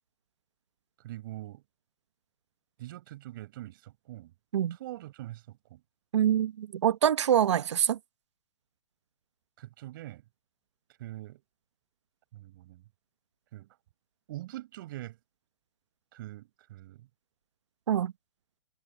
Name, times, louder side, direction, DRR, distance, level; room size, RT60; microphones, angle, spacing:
voice 1, 1.0-1.6 2.8-4.3 4.7-5.8 9.6-10.2 11.0-11.4 12.3-12.8 13.5-13.8 14.3-15.2 16.1-17.1, right 15 dB, 45° right, 6.4 m, -43 dB
voice 2, 6.1-8.0 17.9-18.1, right 10 dB, 70° right, 1.2 m, -25 dB
hypercardioid pair, 150°, 15 cm